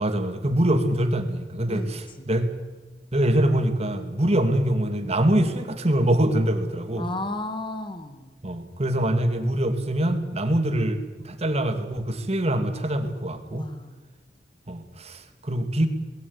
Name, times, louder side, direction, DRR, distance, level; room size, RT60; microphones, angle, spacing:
voice 1, 0.0-2.5 3.1-7.1 8.4-13.7 14.7-15.9, right 1 dB, 35° right, 8 dB, 2.1 m, -24 dB
voice 2, 7.0-8.3 13.5-14.0, left 2 dB, 30° left, 9 dB, 2.1 m, -33 dB
20.0 x 15.5 x 9.6 m, 1.3 s
head